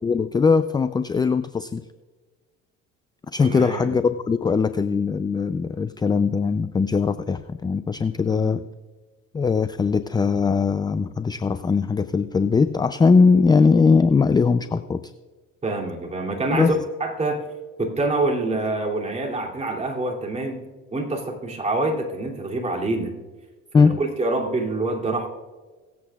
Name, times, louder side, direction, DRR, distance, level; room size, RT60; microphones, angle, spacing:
voice 1, 0.0-1.8 3.3-8.6 9.3-15.0 16.5-16.7 23.7-23.9, left 5 dB, 15° left, 12 dB, 0.4 m, -20 dB
voice 2, 3.4-3.9 8.3-8.6 15.6-17.4 17.8-20.6 20.9-23.1 23.8-25.3, right 2 dB, 20° right, -1 dB, 2.8 m, -26 dB
23.0 x 8.1 x 2.4 m, 1.3 s
supercardioid pair, 85°, 30 cm